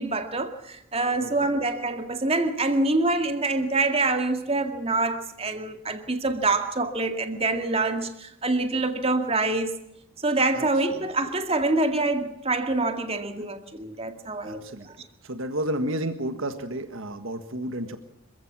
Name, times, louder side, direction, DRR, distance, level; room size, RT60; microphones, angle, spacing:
voice 1, 0.0-9.7 10.2-14.6 14.9-15.0, right 2 dB, 25° right, 2.1 m, -25 dB
voice 2, 1.2-1.5 10.5-10.6 11.0-11.1 13.4-13.5 14.4-14.9 15.2-18.0, right 1 dB, 70° right, 1.7 m, -31 dB
26.5 x 16.0 x 7.5 m
head